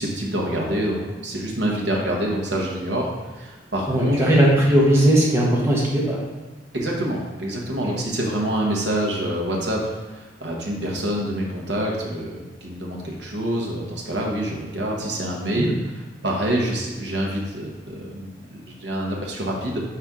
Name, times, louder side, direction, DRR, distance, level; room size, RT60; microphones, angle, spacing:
voice 1, 0.0-3.1 3.3-4.3 6.7-15.7 16.2-19.8, right 1 dB, 65° right, -1 dB, 1.2 m, -26 dB
voice 2, 3.9-6.2 15.5-15.7, right 1 dB, 15° right, -5 dB, 1.0 m, -18 dB
5.8 x 4.4 x 3.7 m, 1.2 s
head